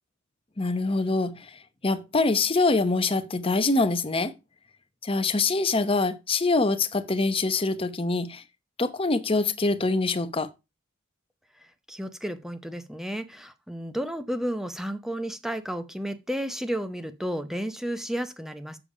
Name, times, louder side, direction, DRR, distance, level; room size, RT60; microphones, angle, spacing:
voice 1, 0.6-4.3 5.0-8.4 8.8-10.5, left 3 dB, 25° left, 0.8 m, -25 dB
voice 2, 11.9-18.8, equal, ahead, 0.8 m, -32 dB
7.1 x 7.0 x 4.9 m
head